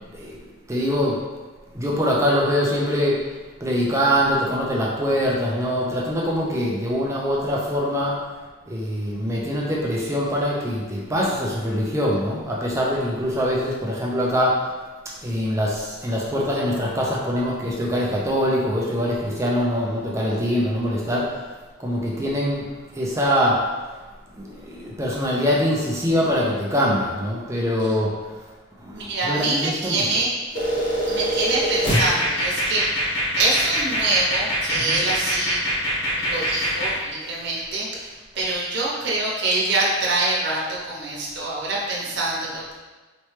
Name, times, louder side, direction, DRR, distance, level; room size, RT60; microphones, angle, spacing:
voice 1, 0.1-1.2 1.7-3.2 3.6-8.2 8.7-14.7 15.1-21.4 21.8-22.7 22.9-23.7 24.4-28.1 28.8-30.2 34.7-35.0, equal, 15° right, -4 dB, 0.5 m, -23 dB
voice 2, 28.9-30.3 31.1-35.6 36.2-42.7, right 2 dB, 60° right, -5 dB, 0.9 m, -25 dB
sound 1, 30.5-37.0, equal, 70° left, 1.1 m, -24 dB
4.2 x 3.1 x 3.2 m, 1.3 s
head